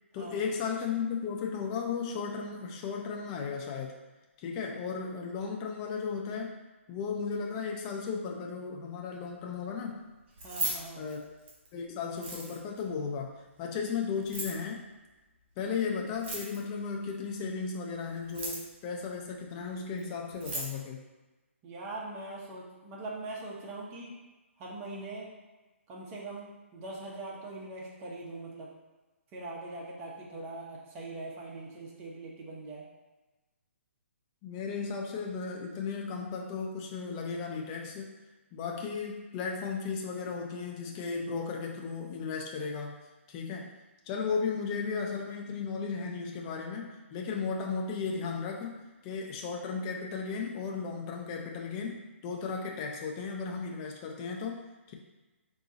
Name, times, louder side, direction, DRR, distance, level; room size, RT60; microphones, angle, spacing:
voice 1, 0.1-4.0 4.4-6.6 6.9-10.0 11.0-11.2 11.7-14.8 15.6-21.0 34.4-38.1 38.5-43.0 43.3-43.7 44.1-54.6 54.9-55.0, left 5 dB, 20° left, 0 dB, 0.3 m, -35 dB
Keys jangling, 10.3-11.7 12.1-12.8 14.2-14.6 16.1-16.8 18.2-18.8 20.0-20.1 20.3-20.7, right 2 dB, 50° right, 1.5 m, -36 dB
voice 2, 10.4-11.0 21.6-24.1 24.6-25.3 25.9-28.7 29.3-32.8, right 2 dB, 20° right, -4 dB, 0.8 m, -42 dB
3.9 x 2.4 x 3.8 m, 1.1 s
hypercardioid pair, 160°, 7 cm